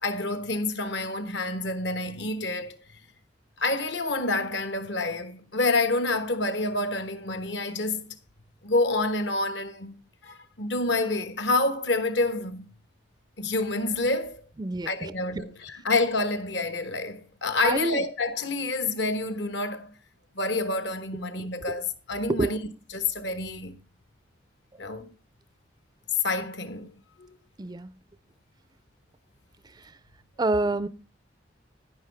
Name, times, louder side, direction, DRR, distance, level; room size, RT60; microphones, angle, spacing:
voice 1, 0.0-2.8 3.6-8.1 8.6-9.9 10.2-12.7 13.4-14.4 14.9-19.9 20.3-22.6 22.9-23.8 24.8-25.1 26.2-26.9 27.2-27.3, left 2 dB, 70° left, 1.3 m, -28 dB
voice 2, 14.6-15.5 17.6-18.0 21.7-21.8 22.3-22.5 27.6-27.9 29.8-29.9 30.4-30.9, right 2 dB, 20° right, 0.4 m, -27 dB
10.5 x 10.5 x 3.4 m
head